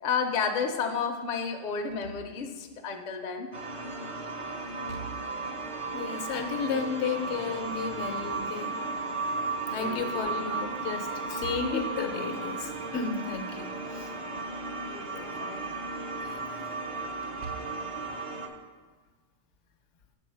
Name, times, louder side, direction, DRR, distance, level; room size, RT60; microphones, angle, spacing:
voice 1, 0.0-3.5 9.7-10.2 14.8-15.7, left 6 dB, 45° left, 4 dB, 0.6 m, -32 dB
Slam / Thump thud, 1.8-2.7 4.7-5.6 7.8-8.9 11.2-12.0 14.1-14.7 15.0-15.1 17.1-18.0, right 6 dB, 70° right, 0.8 m, -46 dB
sound 1, 3.5-18.5, right 3 dB, 40° right, 0.5 m, -35 dB
voice 2, 5.9-8.7 9.7-14.1 16.2-16.7, left 5 dB, 70° left, 6 dB, 1.0 m, -33 dB
6.8 x 4.6 x 5.5 m, 1.4 s
omnidirectional pair, 1.3 m